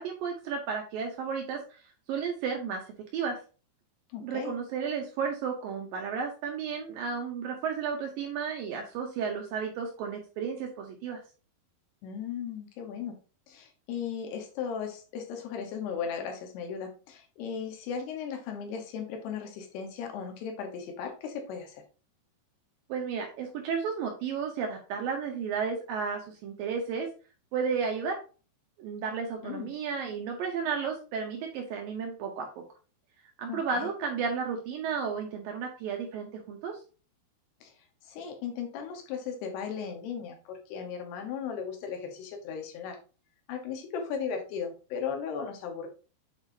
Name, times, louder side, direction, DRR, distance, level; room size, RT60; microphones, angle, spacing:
voice 1, 0.0-1.8 2.1-3.4 4.2-11.2 22.9-27.1 27.5-28.2 28.8-32.5 33.4-36.8, right 6 dB, 75° right, 2 dB, 2.2 m, -33 dB
voice 2, 4.1-4.6 12.0-13.2 13.5-21.8 29.4-29.7 33.5-33.9 37.6-37.7 38.0-43.0 43.5-45.9, left 7 dB, 75° left, 4 dB, 3.1 m, -36 dB
8.0 x 4.7 x 2.7 m, 0.35 s
omnidirectional pair, 4.8 m